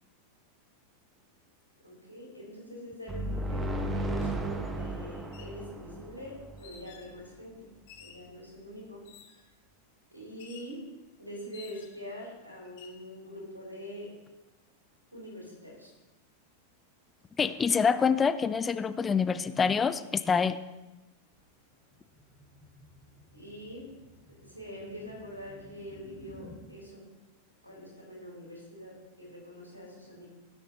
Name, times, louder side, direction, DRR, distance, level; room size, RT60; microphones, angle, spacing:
voice 1, 1.8-7.7 8.0-9.1 10.1-10.9 11.2-14.2 15.1-15.9 23.3-23.9 24.3-27.1 27.6-30.3, equal, 85° right, -3 dB, 3.9 m, -44 dB
sound 1, 3.1-6.8, right 1 dB, 15° right, 1.1 m, -34 dB
sound 2, 4.2-4.3 5.2-5.6 6.6-7.1 7.9-8.3 9.0-9.5 10.4-10.8 11.5-12.1 12.6-13.0, left 8 dB, 50° left, 1.8 m, -52 dB
voice 2, 17.4-20.6, left 6 dB, 20° left, 13 dB, 0.4 m, -26 dB
sound 3, 21.3-26.6, left 2 dB, ahead, 3.2 m, -54 dB
16.5 x 6.5 x 4.3 m, 1.0 s
figure-of-eight pair, 90°, 0 cm